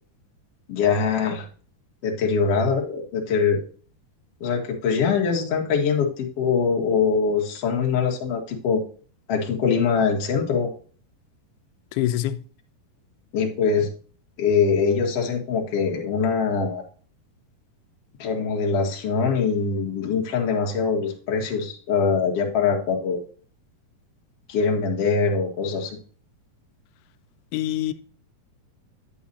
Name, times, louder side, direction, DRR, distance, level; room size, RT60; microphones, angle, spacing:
voice 1, 0.7-1.5 2.0-3.6 4.4-8.8 9.3-10.7 13.3-13.9 14.4-16.8 18.2-23.2 24.5-26.0, left 5 dB, 50° left, 2.1 m, -23 dB
voice 2, 11.9-12.4 27.5-27.9, left 13 dB, 85° left, 2.5 m, -25 dB
8.7 x 8.4 x 2.7 m
omnidirectional pair, 4.5 m